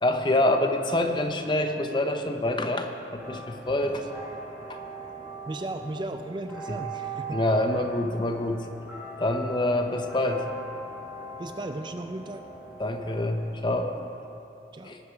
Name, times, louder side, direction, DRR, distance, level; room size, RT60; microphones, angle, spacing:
voice 1, 0.0-4.0 4.7-4.8 7.3-8.7 9.2-10.4 12.8-13.9 14.8-15.0, left 1 dB, 25° left, 5 dB, 0.7 m, -26 dB
sound 1, 3.2-14.1, right 3 dB, 5° right, 3.0 m, -40 dB
voice 2, 5.5-7.4 11.4-12.4 14.7-14.9, right 2 dB, 25° right, 7 dB, 0.4 m, -36 dB
18.0 x 6.6 x 4.9 m, 3.0 s
head